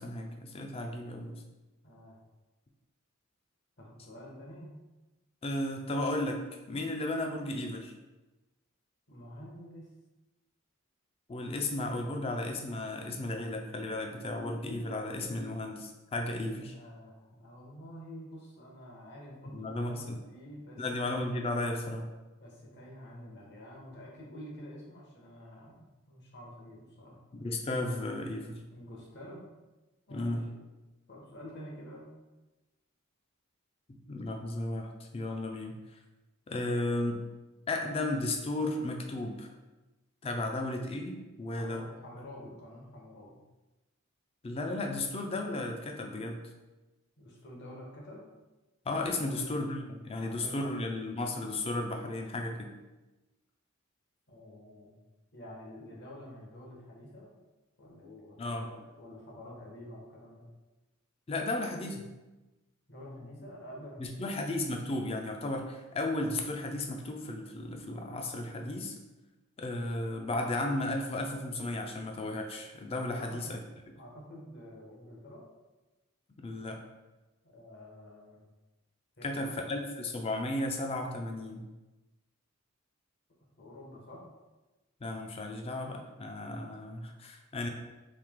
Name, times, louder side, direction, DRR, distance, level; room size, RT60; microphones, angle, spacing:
voice 1, 0.0-1.4 5.4-7.9 11.3-16.8 19.5-20.2 20.8-22.0 27.3-28.6 30.1-30.5 33.9-35.8 36.5-37.2 37.7-39.5 40.2-41.8 44.4-46.4 48.9-52.7 58.4-58.7 61.3-62.1 64.0-69.0 69.6-73.6 76.4-76.8 79.2-81.7 85.0-87.7, left 2 dB, 30° left, 3 dB, 0.4 m, -34 dB
voice 2, 1.8-2.2 3.8-4.8 9.1-9.9 16.7-20.8 22.4-27.2 28.7-29.5 30.1-30.6 31.1-32.1 40.5-40.6 41.6-43.4 47.2-48.2 49.2-49.5 50.2-50.9 54.3-55.0 55.3-57.3 57.8-60.5 62.9-64.3 73.2-73.5 73.9-75.4 77.4-78.4 79.2-79.7 83.6-84.2, equal, 55° left, -3 dB, 0.9 m, -48 dB
3.2 x 2.7 x 3.6 m, 1.1 s
head